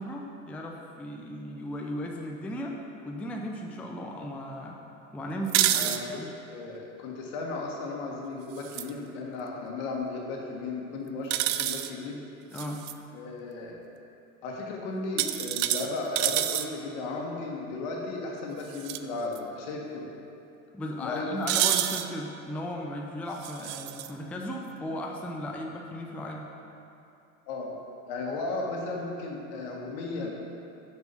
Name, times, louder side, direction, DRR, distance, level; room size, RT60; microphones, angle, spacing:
voice 1, 0.0-2.8 3.0-4.8 5.1-6.3 12.5-12.8 20.7-26.5, equal, 5° left, 0 dB, 0.4 m, -36 dB
sound 1, 5.5-6.0 8.6-8.9 11.3-11.9 12.6-12.9 15.2-16.7 18.7-19.0 19.4-19.5 21.5-22.1 23.4-24.1, right 13 dB, 65° right, 0.5 m, -27 dB
voice 2, 5.6-6.2 6.5-12.2 13.1-13.8 14.4-20.1 20.9-21.5 27.5-27.7 28.1-30.4, left 3 dB, 65° left, -1 dB, 1.5 m, -35 dB
6.6 x 4.7 x 5.6 m, 2.7 s
hypercardioid pair, 95°, 41 cm